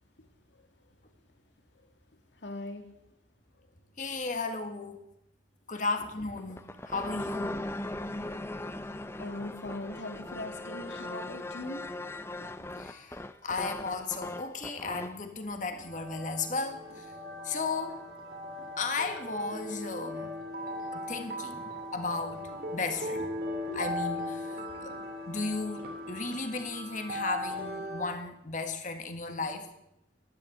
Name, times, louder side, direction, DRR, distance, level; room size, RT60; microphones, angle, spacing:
voice 1, 2.4-3.0 9.2-11.9 12.4-12.5 12.8-12.9 23.7-23.8 24.5-25.1, left 2 dB, 80° left, 5 dB, 2.3 m, -41 dB
voice 2, 4.0-5.0 5.7-7.6 12.8-17.1 17.4-18.0 18.6-20.3 20.9-23.3 23.7-24.9 25.3-29.7, left 3 dB, 45° left, 6 dB, 1.7 m, -35 dB
sound 1, 6.4-15.2, left 1 dB, 15° left, 0.5 m, -39 dB
sound 2, 15.8-28.1, left 1 dB, 55° right, 2.7 m, -38 dB
12.5 x 11.0 x 8.5 m, 0.83 s
head